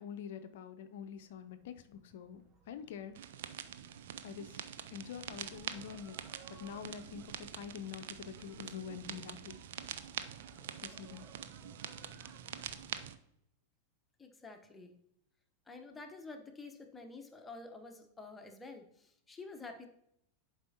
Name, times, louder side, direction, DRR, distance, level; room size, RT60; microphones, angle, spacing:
voice 1, 0.0-3.2 4.2-4.6 4.9-6.2 6.5-9.6 10.8-11.3, left 8 dB, 60° left, 10 dB, 0.5 m, -46 dB
sound 1, 1.1-13.1, right 4 dB, 30° right, 0.9 m, -59 dB
sound 2, 3.2-13.2, right 10 dB, 60° right, 0.4 m, -45 dB
voice 2, 14.2-15.0 15.7-19.9, left 3 dB, 15° left, 5 dB, 0.9 m, -49 dB
11.0 x 4.8 x 2.8 m, 0.75 s
figure-of-eight pair, 90°, 0 cm